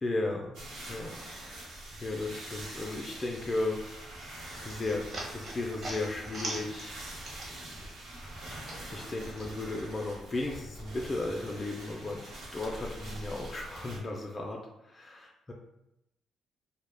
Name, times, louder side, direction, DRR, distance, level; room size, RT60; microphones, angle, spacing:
voice 1, 0.0-0.6 0.9-1.2 1.4-1.6 2.0-3.9 4.6-7.0 8.9-12.2 12.5-15.5, left 2 dB, 25° left, 0 dB, 0.3 m, -35 dB
sound 1, 0.5-14.0, right 1 dB, 85° right, 0.7 m, -44 dB
sound 2, 4.2-7.8 8.1-9.5, right 2 dB, 50° right, 0.8 m, -42 dB
2.1 x 2.0 x 3.2 m, 0.88 s
cardioid pair, 90°, 0 cm